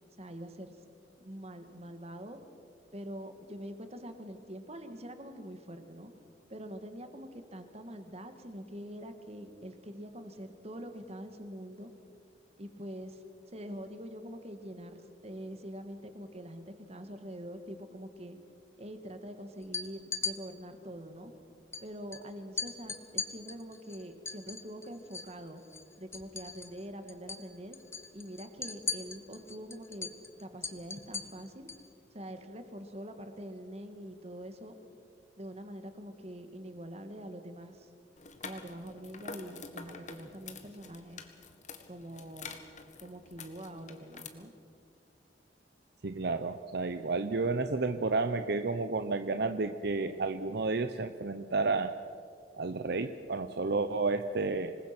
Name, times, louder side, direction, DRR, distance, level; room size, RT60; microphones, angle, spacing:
voice 1, 0.2-0.8 1.2-2.4 2.9-6.1 6.5-11.9 12.6-13.2 13.5-18.4 18.8-21.3 21.8-25.6 26.0-27.8 28.1-30.1 30.4-31.7 32.1-34.7 35.4-37.9 38.4-41.2 41.9-42.5 43.0-44.5, equal, 35° right, 7 dB, 2.0 m, -44 dB
sound 1, 19.6-20.3 21.7-21.8 22.1-22.2 22.6-25.3 25.6-26.8 27.1-27.4 27.7-31.9, left 4 dB, 15° left, 1.2 m, -38 dB
sound 2, 38.2-44.3, left 4 dB, 40° left, 1.7 m, -48 dB
voice 2, 46.0-52.0 52.5-54.8, right 3 dB, 60° right, 9 dB, 0.7 m, -31 dB
26.5 x 20.5 x 6.1 m, 2.3 s
head